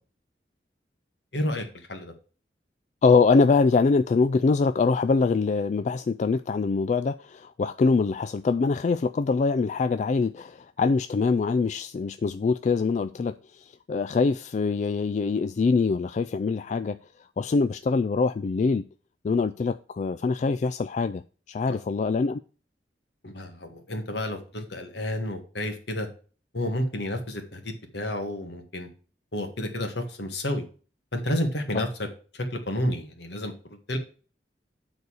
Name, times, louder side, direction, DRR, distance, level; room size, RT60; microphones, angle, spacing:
voice 1, 1.3-2.1 21.7-21.8 23.2-26.1 26.5-28.9 29.3-30.6 31.1-31.9 32.3-33.5 33.9-34.0, left 1 dB, 70° left, 1.8 m, -30 dB
voice 2, 3.0-17.0 17.4-18.9 19.2-21.2 21.5-22.4, left 4 dB, 40° left, 0.3 m, -24 dB
9.3 x 4.0 x 6.3 m
head